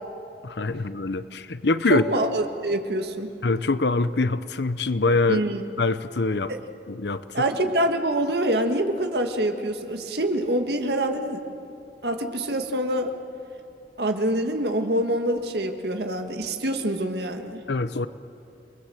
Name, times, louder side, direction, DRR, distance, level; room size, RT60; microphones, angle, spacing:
voice 1, 0.4-2.0 3.4-5.4 5.8-6.5 6.9-7.4 17.7-18.1, left 3 dB, 70° left, 13 dB, 0.8 m, -24 dB
voice 2, 1.9-3.3 5.3-5.6 6.5-6.6 7.3-11.4 12.0-13.1 14.0-17.6, right 1 dB, 60° right, 5 dB, 1.9 m, -25 dB
29.5 x 20.5 x 7.8 m, 2.6 s
head